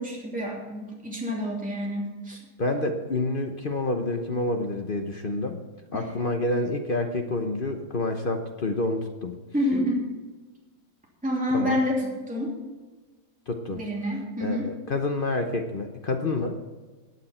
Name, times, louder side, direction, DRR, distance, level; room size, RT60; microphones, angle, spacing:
voice 1, 0.0-2.4 5.9-6.1 9.5-10.1 11.2-12.6 13.7-14.7, left 1 dB, 5° right, -4 dB, 2.9 m, -28 dB
voice 2, 2.6-5.6 5.9-9.4 11.5-11.8 13.5-13.8 14.4-16.6, left 2 dB, 40° left, 5 dB, 0.8 m, -28 dB
16.5 x 9.2 x 4.4 m, 1.3 s
omnidirectional pair, 2.0 m